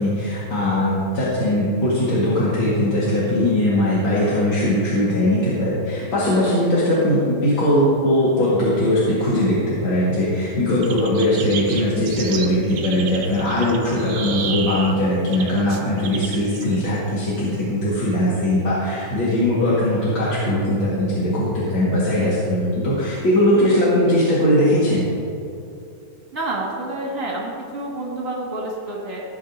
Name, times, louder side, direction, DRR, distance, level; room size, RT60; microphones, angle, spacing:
voice 1, 0.0-25.0, left 1 dB, 50° left, -8 dB, 2.1 m, -20 dB
sound 1, 10.8-17.7, right 5 dB, 70° right, 1.3 m, -31 dB
voice 2, 26.3-29.2, right 2 dB, 35° right, -3 dB, 1.8 m, -28 dB
15.5 x 8.8 x 2.6 m, 2.6 s
omnidirectional pair, 3.3 m